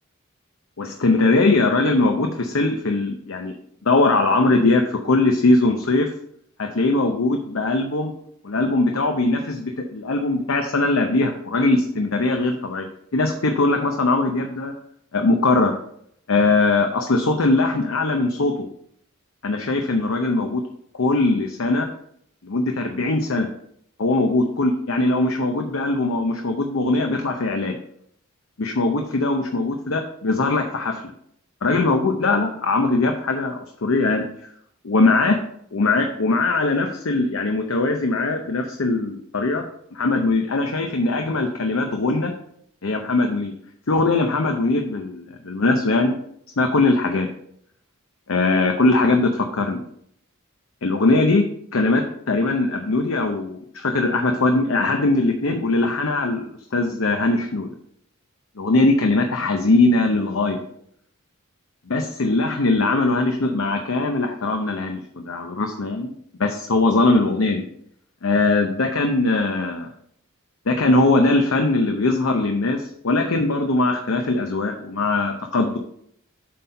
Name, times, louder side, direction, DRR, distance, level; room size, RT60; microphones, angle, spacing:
voice 1, 0.8-3.5 3.8-6.1 6.6-8.1 8.4-12.9 13.1-14.7 15.1-15.7 16.3-18.7 19.4-20.6 20.9-21.9 22.4-23.5 24.0-27.8 28.6-31.0 31.6-34.5 34.8-35.4 35.7-39.6 39.9-42.3 42.8-43.5 43.9-46.2 46.6-47.3 48.3-49.8 50.8-51.5 51.7-57.7 58.6-60.6 61.9-65.0 65.3-66.1 66.4-67.6 68.2-69.9 70.7-75.8, left 2 dB, 65° left, 4 dB, 0.7 m, -21 dB
7.5 x 4.3 x 5.4 m, 0.69 s
head